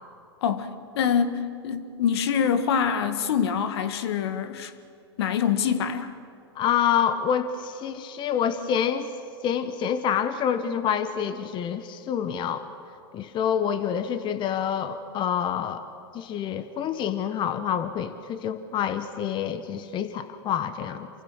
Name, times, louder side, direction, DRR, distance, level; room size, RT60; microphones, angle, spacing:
voice 1, 0.4-4.7 5.2-6.1, left 7 dB, 70° left, 10 dB, 1.8 m, -25 dB
voice 2, 6.5-9.1 9.4-12.6 13.1-15.8 16.1-21.1, left 8 dB, 35° left, 11 dB, 1.3 m, -27 dB
28.0 x 24.5 x 6.4 m, 2.4 s
hypercardioid pair, 105°, 14 cm